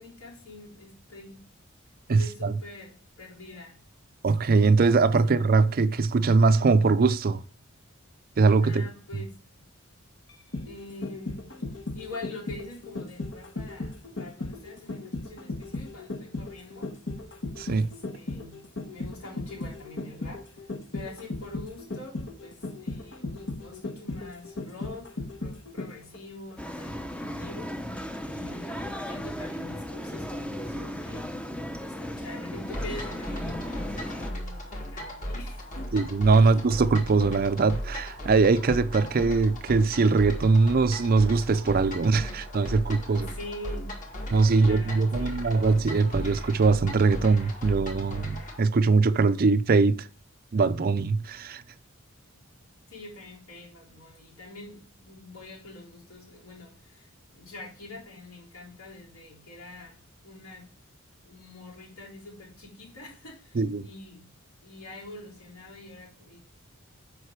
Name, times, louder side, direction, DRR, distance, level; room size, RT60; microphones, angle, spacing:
voice 1, 0.0-1.5 2.2-3.8 5.2-5.4 8.6-9.4 10.7-17.0 17.7-36.1 36.4-36.6 39.0-39.1 43.1-43.9 44.5-45.5 52.3-52.4 52.9-60.7 61.2-64.3 64.6-66.4, left 2 dB, 75° left, 3.7 m, -45 dB
voice 2, 2.1-2.5 4.2-7.4 8.4-8.8 17.6-17.9 35.9-43.3 44.3-50.1 50.5-51.6 63.5-63.9, right 4 dB, 45° right, 0.4 m, -22 dB
sound 1, 10.3-26.2 26.5-26.6, left 2 dB, 60° left, 1.1 m, -36 dB
sound 2, 26.6-34.3, equal, 5° left, 0.6 m, -36 dB
sound 3, 32.7-48.6, equal, 35° left, 1.9 m, -37 dB
8.1 x 5.2 x 4.6 m
head